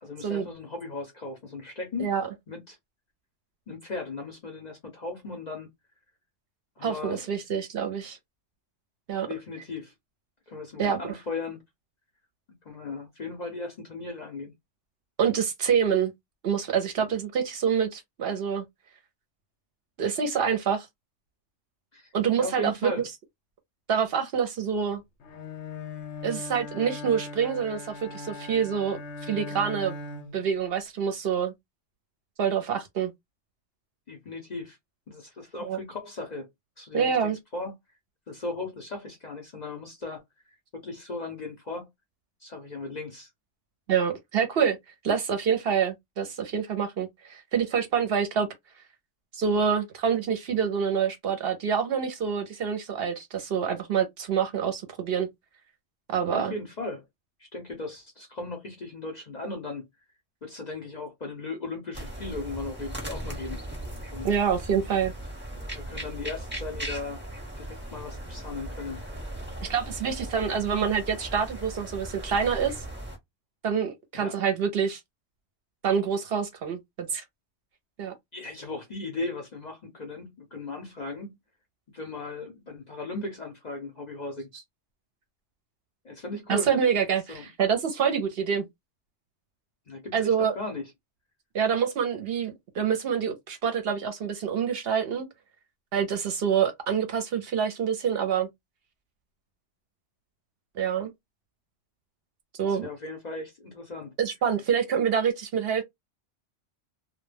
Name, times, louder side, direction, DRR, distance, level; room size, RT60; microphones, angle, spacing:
voice 1, 0.0-2.1 2.5-2.8 3.7-5.7 6.8-7.2 9.2-9.9 10.5-11.6 12.6-14.5 21.9-22.1 22.4-23.0 34.1-34.8 35.1-36.5 36.8-37.7 38.3-40.2 40.7-41.9 42.4-43.3 56.3-57.0 57.4-59.9 60.4-63.6 64.1-64.3 65.5-67.2 67.6-69.0 74.1-74.3 78.3-81.4 81.9-84.5 86.0-86.7 87.3-87.5 89.9-90.9 102.7-104.1, left 3 dB, 50° left, 0.6 m, -37 dB
voice 2, 6.8-8.2 9.1-9.3 10.8-11.1 15.2-16.1 16.4-18.6 20.0-20.9 22.1-22.9 23.9-25.0 26.2-29.9 30.3-31.5 32.4-33.1 35.6-35.8 36.9-37.4 43.9-44.8 45.0-48.5 49.3-55.3 56.1-56.5 64.2-65.1 69.6-72.8 73.6-75.0 75.8-77.2 78.0-78.1 86.5-88.7 90.1-90.6 91.5-95.3 95.9-98.5 100.8-101.1 102.6-102.9 104.2-105.8, right 7 dB, 65° right, 0.7 m, -26 dB
Bowed string instrument, 25.2-30.5, left 3 dB, 70° left, 0.8 m, -39 dB
sound 1, 61.9-73.2, right 1 dB, 10° right, 0.7 m, -38 dB
2.1 x 2.1 x 3.2 m
omnidirectional pair, 1.3 m